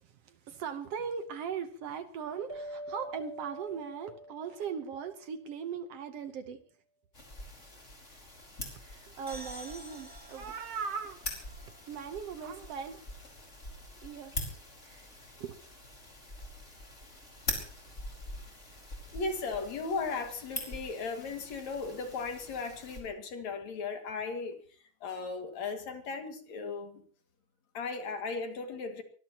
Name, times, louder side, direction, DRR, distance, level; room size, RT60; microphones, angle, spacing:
voice 1, 0.0-6.6 8.8-11.2 11.9-13.0 14.0-14.3 14.8-15.1 15.4-15.6, right 6 dB, 65° right, 1.8 m, -39 dB
sound 1, 2.5-5.5, equal, 25° right, 1.7 m, -45 dB
sound 2, 7.1-23.0, left 1 dB, 20° left, 5.0 m, -44 dB
sound 3, 9.3-12.8, equal, 5° right, 3.4 m, -51 dB
voice 2, 19.1-24.6 25.0-27.0 27.7-29.0, left 4 dB, 70° left, 3.4 m, -36 dB
23.5 x 19.5 x 2.9 m
omnidirectional pair, 3.3 m